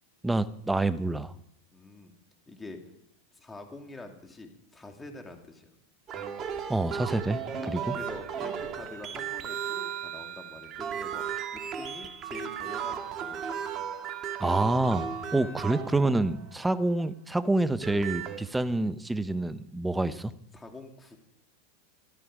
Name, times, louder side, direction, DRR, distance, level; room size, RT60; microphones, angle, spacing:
voice 1, 0.2-1.3 6.7-7.4 7.7-7.9 14.4-20.3, right 2 dB, 5° right, 13 dB, 0.8 m, -27 dB
voice 2, 1.7-2.1 2.5-2.8 3.3-5.7 7.6-11.2 11.5-13.4 20.5-21.2, left 2 dB, 15° left, 3 dB, 2.6 m, -46 dB
sound 1, 6.1-16.6 17.6-18.4, right 8 dB, 35° right, 1.9 m, -35 dB
15.0 x 12.5 x 4.9 m, 0.75 s
hypercardioid pair, 105°, 0 cm